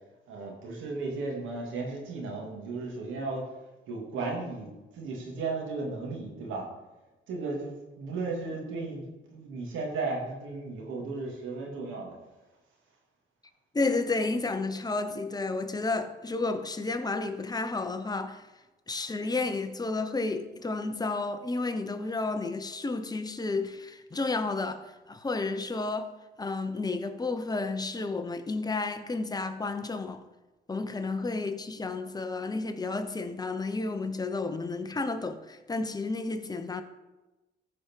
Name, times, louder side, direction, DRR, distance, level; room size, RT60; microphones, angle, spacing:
voice 1, 0.3-3.5 3.9-6.7 7.3-12.2, right 3 dB, 85° right, 2.6 m, -35 dB
voice 2, 13.7-18.4 18.9-24.8 25.1-26.1 26.4-30.2 30.7-36.8, left 3 dB, 20° left, 0.9 m, -31 dB
14.5 x 5.0 x 4.7 m
cardioid pair, 90°, 20 cm